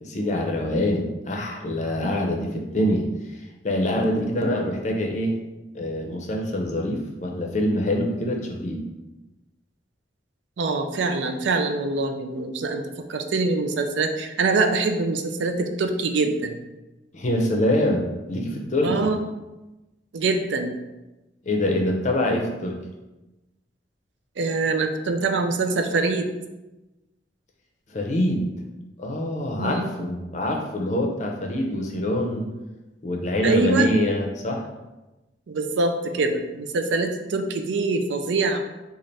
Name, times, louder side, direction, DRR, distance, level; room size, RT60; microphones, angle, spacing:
voice 1, 0.0-3.1 3.4-5.4 5.7-8.8 17.1-19.1 21.4-22.8 27.9-28.5 29.0-32.5 33.0-34.7, left 1 dB, 40° left, 1 dB, 0.5 m, -25 dB
voice 2, 10.6-16.6 18.8-19.2 20.1-20.7 24.4-26.3 29.6-29.9 33.4-33.9 35.5-38.6, right 3 dB, 80° right, 6 dB, 0.4 m, -24 dB
3.2 x 2.5 x 4.0 m, 1.0 s
head